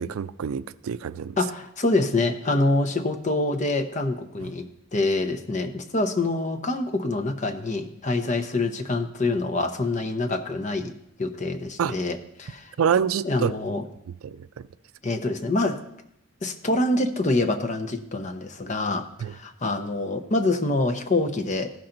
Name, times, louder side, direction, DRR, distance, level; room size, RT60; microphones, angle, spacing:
voice 1, 0.0-1.4 11.8-11.9 12.8-13.5 14.2-14.5 19.2-19.3, right 7 dB, 85° right, 0.4 m, -26 dB
voice 2, 1.4-12.7 13.2-13.8 15.0-15.8 16.4-21.7, left 2 dB, 35° left, 0.7 m, -26 dB
15.0 x 5.8 x 3.8 m
head